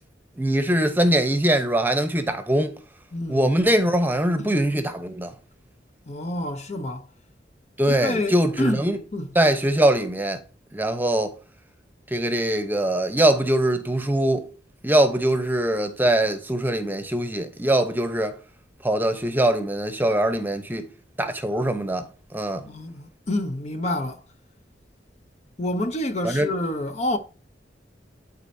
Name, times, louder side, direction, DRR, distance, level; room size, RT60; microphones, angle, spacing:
voice 1, 0.4-2.8 3.3-5.3 7.8-9.0 9.3-10.4 10.7-11.3 12.1-14.5 14.8-18.3 18.8-20.9 21.2-22.1 22.3-22.6 26.2-26.5, right 1 dB, 10° right, 0.9 m, -22 dB
voice 2, 3.1-3.5 4.4-4.5 6.1-7.1 7.9-8.8 9.1-9.3 22.5-24.2 25.6-27.2, left 1 dB, 40° left, 0.7 m, -28 dB
11.5 x 4.2 x 2.7 m
head